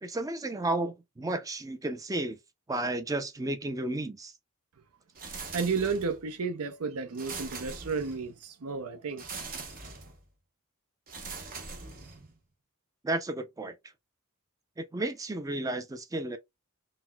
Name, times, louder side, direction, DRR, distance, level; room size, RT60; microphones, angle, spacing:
voice 1, 0.0-2.4 2.7-4.3 13.0-13.7 14.8-16.4, right 2 dB, 15° right, 0.4 m, -32 dB
sound 1, 5.1-6.3 7.1-8.4 9.2-10.2 11.1-12.4, right 4 dB, 40° right, 0.8 m, -42 dB
voice 2, 5.5-9.2, right 5 dB, 75° right, 0.6 m, -32 dB
4.0 x 2.1 x 2.2 m
head